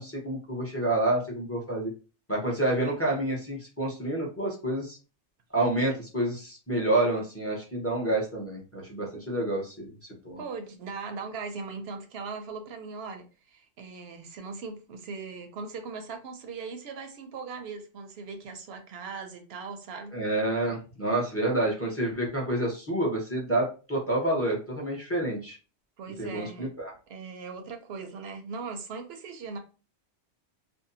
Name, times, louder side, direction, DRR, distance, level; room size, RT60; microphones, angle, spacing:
voice 1, 0.0-1.9 2.3-5.0 5.5-9.9 10.2-10.4 20.1-25.6 26.2-26.9, right 1 dB, 15° left, -2 dB, 0.5 m, -28 dB
voice 2, 10.4-13.3 13.5-20.2 26.0-26.7 27.1-29.6, right 4 dB, 65° right, 6 dB, 0.7 m, -39 dB
2.6 x 2.1 x 2.6 m, 0.34 s
omnidirectional pair, 1.3 m